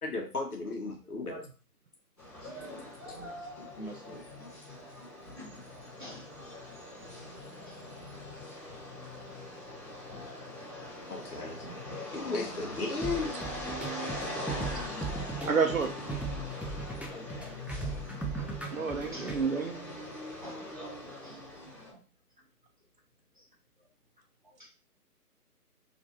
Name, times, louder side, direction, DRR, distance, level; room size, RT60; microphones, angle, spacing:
voice 1, 0.0-1.4 11.1-11.6 12.1-13.3, left 3 dB, 70° left, 0 dB, 1.6 m, -35 dB
sound 1, 2.2-21.9, left 1 dB, 15° left, 1.7 m, -42 dB
voice 2, 2.4-3.3 3.8-4.2 12.3-12.4 17.1-18.0, equal, 35° left, -3 dB, 1.3 m, -48 dB
voice 3, 3.4-3.8 5.0-6.5 7.7-7.8 9.1-9.2 10.6-10.7 17.4-17.5 19.1-19.4 20.4-20.7 21.0-21.4, equal, 30° right, -3 dB, 0.8 m, -49 dB
sound 2, 13.0-19.4, right 3 dB, 5° right, 0.3 m, -38 dB
voice 4, 15.5-15.9 18.7-19.7, right 5 dB, 60° right, 4 dB, 0.9 m, -28 dB
4.0 x 2.8 x 4.0 m, 0.34 s
hypercardioid pair, 180°, 47 cm